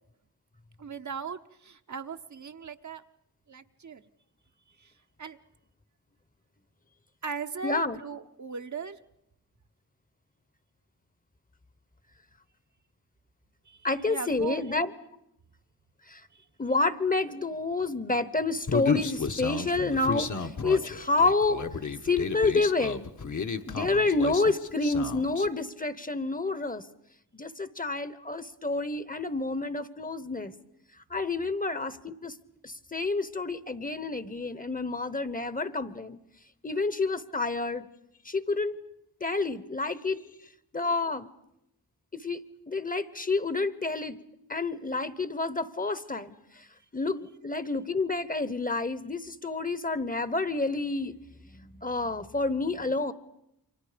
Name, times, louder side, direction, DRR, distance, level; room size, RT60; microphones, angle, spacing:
voice 1, 0.8-3.0 3.5-4.0 4.8-4.9 5.2-5.4 7.2-9.0 13.7-14.8 16.3-16.4, right 5 dB, 50° right, 8 dB, 0.9 m, -39 dB
voice 2, 7.6-8.0 13.8-14.9 16.1-16.2 16.6-21.6 22.0-23.0 23.7-26.8 27.3-30.5 31.1-32.3 32.6-36.2 36.6-37.8 38.2-38.8 39.2-40.3 40.7-41.3 42.1-42.4 42.7-44.2 44.5-46.3 46.9-51.1 51.5-53.1, left 3 dB, 20° left, 16 dB, 1.0 m, -29 dB
Human voice, 18.7-25.5, left 5 dB, 50° left, 1.2 m, -32 dB
28.5 x 24.0 x 5.1 m, 0.82 s
cardioid pair, 65°, 38 cm